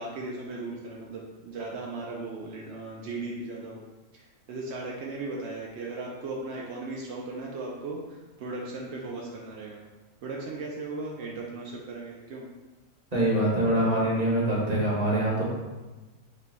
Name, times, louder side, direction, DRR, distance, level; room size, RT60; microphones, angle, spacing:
voice 1, 0.0-3.8 4.1-9.8 10.2-12.5, right 2 dB, 80° right, -2 dB, 0.6 m, -37 dB
voice 2, 13.1-15.4, right 1 dB, 25° right, -6 dB, 1.1 m, -24 dB
5.2 x 2.2 x 3.9 m, 1.2 s
omnidirectional pair, 1.8 m